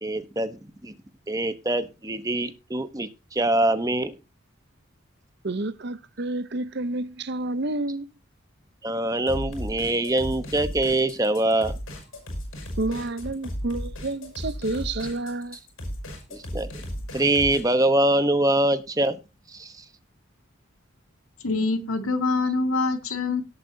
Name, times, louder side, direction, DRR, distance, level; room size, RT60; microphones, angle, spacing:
voice 1, 0.0-0.9 1.3-4.1 8.8-11.7 16.3-16.7 17.1-19.2 19.5-19.8, right 1 dB, 15° right, 0.9 m, -24 dB
voice 2, 5.4-8.1 12.8-15.6, right 2 dB, 55° right, 0.7 m, -29 dB
sound 1, 9.3-17.6, equal, 70° left, 6.2 m, -35 dB
voice 3, 21.4-23.4, left 3 dB, 90° left, 2.1 m, -25 dB
18.0 x 8.3 x 2.8 m
head